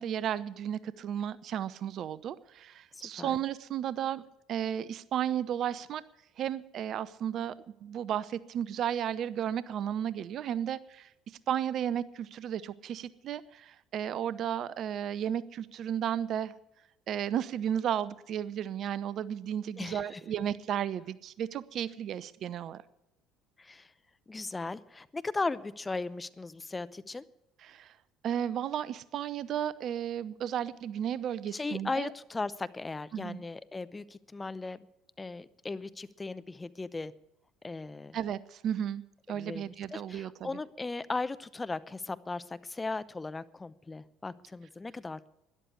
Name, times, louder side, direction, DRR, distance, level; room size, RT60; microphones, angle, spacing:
voice 1, 0.0-4.2 4.5-6.0 6.4-7.5 7.8-11.1 11.5-16.5 17.1-22.8 27.6-27.9 28.2-32.1 33.1-33.4 38.1-39.0 39.3-40.5, right 9 dB, 55° right, 18 dB, 0.7 m, -33 dB
voice 2, 2.9-3.4 19.8-20.2 23.6-23.9 24.3-27.2 31.5-34.8 35.2-37.1 37.6-38.2 39.3-45.3, left 3 dB, 20° left, 15 dB, 0.8 m, -37 dB
13.0 x 11.0 x 8.2 m, 0.85 s
hypercardioid pair, 60°, 0 cm